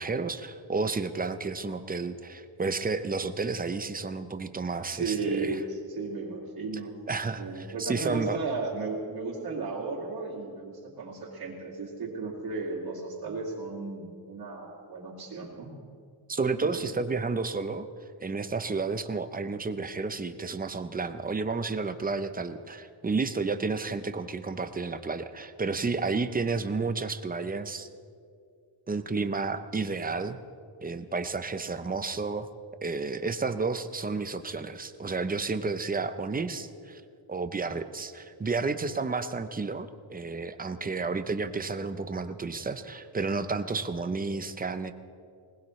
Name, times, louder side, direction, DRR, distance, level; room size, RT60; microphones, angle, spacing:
voice 1, 0.0-5.6 7.1-8.4 16.3-17.9 18.2-27.9 28.9-30.4 30.8-32.5 32.8-37.0 37.3-44.9, right 4 dB, 20° right, 10 dB, 0.6 m, -31 dB
voice 2, 4.8-6.9 7.3-15.7 16.6-16.8 29.1-29.2, right 3 dB, 50° right, -6 dB, 2.6 m, -35 dB
21.0 x 19.5 x 3.2 m, 2.3 s
wide cardioid pair, 135°, 47 cm